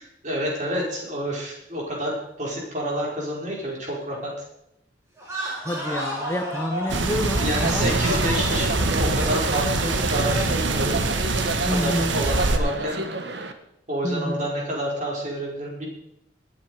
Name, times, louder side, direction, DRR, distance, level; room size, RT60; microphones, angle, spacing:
voice 1, 0.2-4.5 7.4-8.7 9.0-11.0 11.7-13.0 13.9-15.9, equal, 40° right, -3 dB, 5.0 m, -28 dB
sound 1, 5.2-10.6, equal, 15° right, 4.6 m, -33 dB
voice 2, 5.6-8.0 11.7-12.2 14.0-14.5, left 1 dB, 10° left, 4 dB, 0.8 m, -28 dB
sound 2, 6.9-12.6, right 3 dB, 80° right, 1.4 m, -24 dB
sound 3, 7.5-13.5, right 2 dB, 60° right, 1.3 m, -30 dB
20.0 x 9.7 x 4.9 m, 0.83 s
head